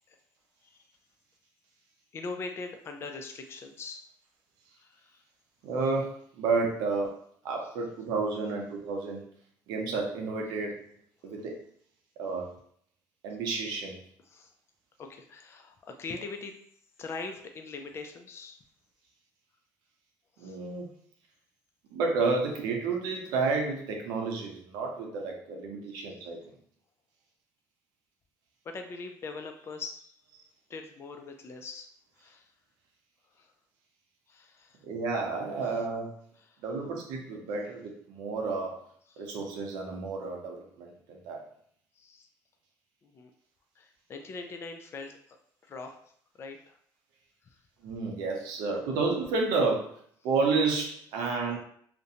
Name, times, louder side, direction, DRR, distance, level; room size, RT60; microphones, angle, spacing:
voice 1, 2.1-4.0 4.8-5.2 7.6-7.7 14.2-14.5 15.0-16.5 17.0-18.6 20.4-20.6 26.0-26.1 28.6-30.1 30.7-31.9 32.2-32.5 33.3-33.5 34.3-34.8 35.6-35.8 36.4-36.6 39.1-39.4 42.0-42.3 43.0-43.3 43.8-45.4 45.6-45.9 46.4-46.8 47.4-47.6, left 3 dB, 40° left, 5 dB, 0.4 m, -42 dB
voice 2, 5.6-7.1 7.4-9.3 9.7-10.8 11.2-11.5 12.2-12.5 13.2-14.0 20.4-20.9 21.9-26.4 34.8-36.1 36.6-38.7 39.2-41.4 47.8-49.9 50.2-51.6, right 4 dB, 85° right, 1 dB, 0.6 m, -31 dB
2.5 x 2.1 x 2.7 m, 0.63 s
cardioid pair, 115°, 7 cm